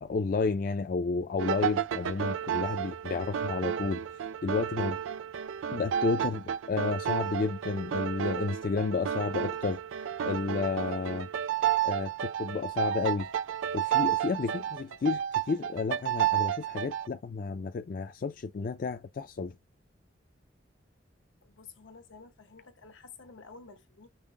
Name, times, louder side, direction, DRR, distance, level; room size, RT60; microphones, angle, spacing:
voice 1, 0.0-4.0 4.4-5.0 5.7-9.8 10.2-11.3 11.8-13.3 13.7-19.6, left 4 dB, 45° left, 0.3 m, -31 dB
sound 1, 1.4-17.1, right 10 dB, 85° right, 0.3 m, -31 dB
voice 2, 21.4-24.1, left 4 dB, 85° left, 0.8 m, -51 dB
5.4 x 2.0 x 3.6 m
head